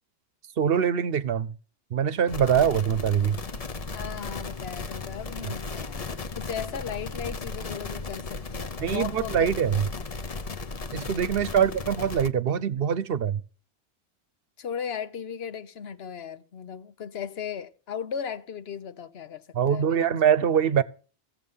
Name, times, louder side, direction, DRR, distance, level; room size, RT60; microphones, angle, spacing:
voice 1, 0.6-1.5 1.9-3.4 8.8-9.9 10.9-13.4 19.5-20.8, right 8 dB, 65° right, 0.9 m, -23 dB
sound 1, 2.3-12.3, left 4 dB, 40° left, 0.8 m, -36 dB
voice 2, 3.9-9.5 11.3-11.6 14.6-20.2, left 7 dB, 75° left, 1.1 m, -37 dB
15.5 x 7.3 x 5.5 m
omnidirectional pair, 1.1 m